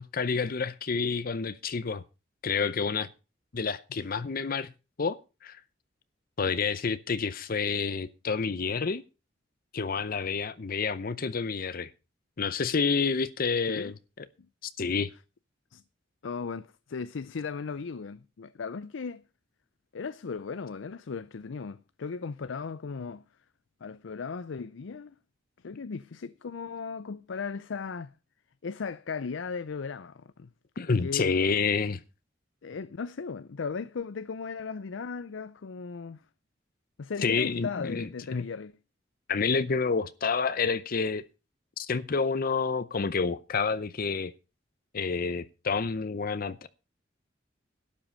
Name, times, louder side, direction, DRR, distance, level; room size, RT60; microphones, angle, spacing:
voice 1, 0.0-2.0 2.4-3.1 3.5-4.7 5.0-5.6 6.4-9.0 9.7-11.9 12.4-13.9 14.8-15.1 30.8-32.0 37.2-38.4 39.3-41.2 41.8-44.3 44.9-46.7, left 5 dB, 50° left, 0.6 m, -29 dB
voice 2, 16.2-19.2 19.9-23.2 23.8-25.1 25.6-28.1 28.6-30.5 31.0-31.3 32.6-36.2 37.0-38.7, left 5 dB, 90° left, 0.5 m, -37 dB
12.5 x 8.9 x 5.4 m
head